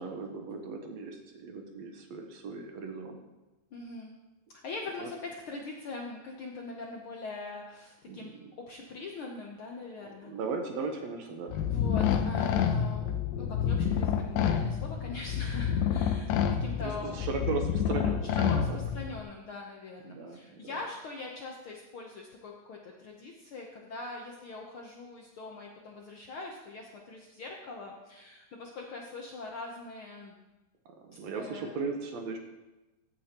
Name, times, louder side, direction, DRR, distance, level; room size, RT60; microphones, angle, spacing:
voice 1, 0.0-3.2 5.0-5.1 8.1-8.5 10.0-11.6 16.8-18.6 20.1-20.8 30.9-32.4, right 4 dB, 70° right, 4 dB, 2.1 m, -37 dB
voice 2, 3.7-4.1 4.5-10.3 11.7-17.1 18.2-30.3 31.3-31.7, left 3 dB, 65° left, 0 dB, 1.3 m, -42 dB
sound 1, 11.5-19.2, left 8 dB, 85° left, 2.1 m, -29 dB
15.0 x 9.1 x 2.9 m, 1.1 s
omnidirectional pair, 3.4 m